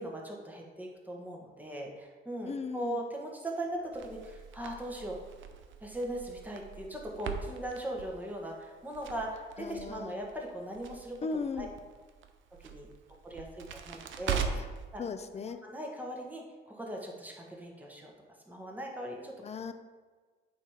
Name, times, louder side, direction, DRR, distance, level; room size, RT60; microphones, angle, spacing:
voice 1, 0.0-5.2 5.8-11.2 11.6-11.7 12.6-12.9 13.2-14.6 14.9-15.0 15.4-18.1 18.5-19.3, right 1 dB, 10° right, -1 dB, 1.5 m, -39 dB
voice 2, 2.5-3.0 9.6-10.1 11.2-11.7 14.5-14.6 15.0-15.6 19.4-19.7, left 4 dB, 35° left, 9 dB, 0.6 m, -37 dB
Crackle, 3.9-14.8, right 7 dB, 75° right, 0.7 m, -41 dB
8.3 x 3.3 x 5.7 m, 1.4 s
cardioid pair, 90°, 20 cm